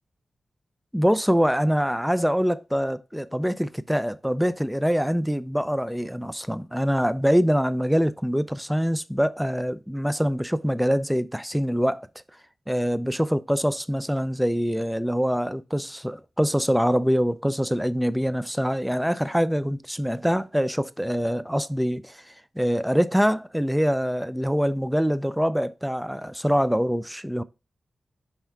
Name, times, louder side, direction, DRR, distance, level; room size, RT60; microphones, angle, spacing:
voice 1, 0.9-12.1 12.7-27.4, equal, ahead, 0.3 m, -24 dB
5.8 x 5.4 x 3.5 m
wide cardioid pair, 115°, 0 cm